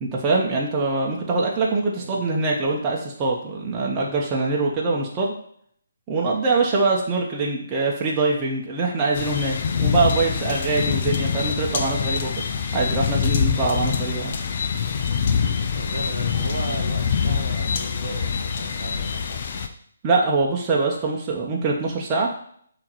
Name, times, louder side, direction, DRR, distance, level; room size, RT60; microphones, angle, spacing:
voice 1, 0.0-5.3 6.1-12.3 12.7-14.4 20.0-22.3, right 3 dB, 20° right, -3 dB, 1.1 m, -23 dB
sound 1, 9.1-19.7, left 6 dB, 45° left, 0.6 m, -25 dB
voice 2, 15.7-19.7, right 3 dB, 50° right, 2 dB, 1.1 m, -36 dB
7.4 x 3.0 x 4.6 m, 0.64 s
figure-of-eight pair, 140°, 0 cm